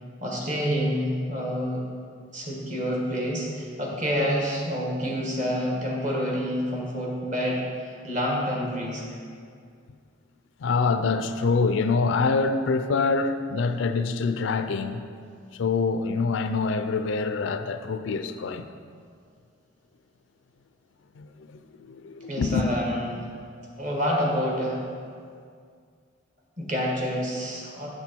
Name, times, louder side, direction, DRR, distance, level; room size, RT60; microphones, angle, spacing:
voice 1, 0.2-1.8 2.3-9.0 22.3-23.3 23.8-24.8 26.6-27.9, equal, 40° right, 1.4 m, -28 dB
voice 2, 10.6-15.0 15.5-18.7 21.2-22.7, left 4 dB, 70° left, 0.4 m, -25 dB
7.4 x 6.1 x 4.4 m
head